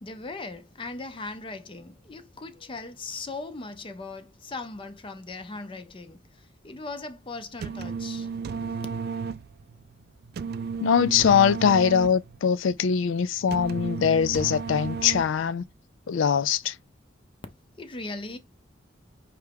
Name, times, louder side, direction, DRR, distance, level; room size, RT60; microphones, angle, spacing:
voice 1, 0.0-6.2 6.6-8.3 17.8-18.4, left 3 dB, 25° left, 0.5 m, -38 dB
sound 1, 7.4-15.6, right 5 dB, 55° right, 0.3 m, -34 dB
voice 2, 10.8-15.6 16.1-16.8, left 7 dB, 85° left, 0.4 m, -22 dB
4.8 x 3.3 x 3.3 m
head